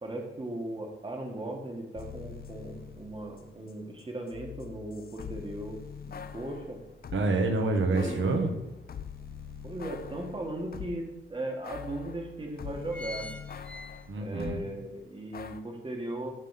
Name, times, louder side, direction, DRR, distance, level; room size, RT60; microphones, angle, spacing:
voice 1, 0.0-5.8 6.1-6.8 7.9-8.2 9.6-13.3 14.2-16.4, right 1 dB, 25° right, 2 dB, 1.6 m, -37 dB
sound 1, 1.9-7.3 7.9-11.1 11.6-14.7 15.3-15.6, left 7 dB, 45° left, 0.6 m, -44 dB
voice 2, 7.1-8.5 14.1-14.7, right 3 dB, 70° right, 4 dB, 1.5 m, -27 dB
sound 2, 8.7-8.8 9.2-10.4 11.0-11.1 11.4-11.5 12.2-12.4 12.6-14.5 14.9-15.0, left 2 dB, 5° left, 0.7 m, -43 dB
11.5 x 4.1 x 5.8 m, 0.92 s
wide cardioid pair, 125°, 21 cm